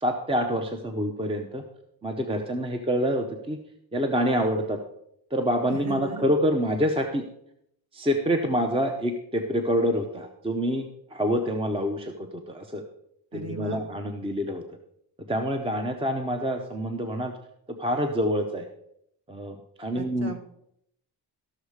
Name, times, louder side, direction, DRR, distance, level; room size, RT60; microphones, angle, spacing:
voice 1, 0.0-1.6 2.0-3.6 3.9-4.8 5.3-7.2 7.9-10.8 11.1-12.1 12.5-12.8 13.3-14.6 15.3-17.3 17.8-18.6 19.3-20.3, equal, 15° right, 5 dB, 0.8 m, -26 dB
voice 2, 5.7-6.3 13.3-13.8 19.9-20.4, right 3 dB, 40° right, 5 dB, 1.5 m, -36 dB
13.5 x 6.4 x 4.8 m, 0.75 s
cardioid pair, 130°, 41 cm